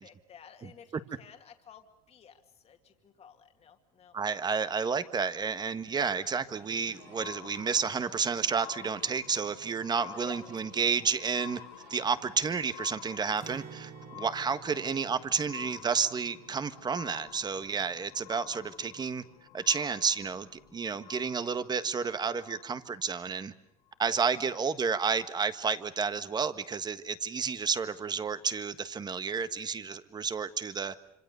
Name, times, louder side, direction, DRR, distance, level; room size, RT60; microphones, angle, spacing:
voice 1, 0.0-4.2 10.2-10.4 14.8-15.0 24.4-24.6, left 7 dB, 35° left, 5 dB, 2.3 m, -53 dB
voice 2, 4.1-11.6 11.9-19.2 19.5-23.5 24.0-31.0, right 5 dB, 25° right, 12 dB, 1.4 m, -31 dB
Spaceship Emergency Alarm, 6.3-23.1 23.9-24.0, left 15 dB, 85° left, 1.5 m, -50 dB
sound 1, 6.5-13.4, right 9 dB, 60° right, 2.5 m, -57 dB
Acoustic guitar, 13.4-19.3 19.6-19.8 20.2-20.7, right 7 dB, 40° right, 3.2 m, -52 dB
26.0 x 26.0 x 6.9 m, 0.85 s
supercardioid pair, 110°, 18 cm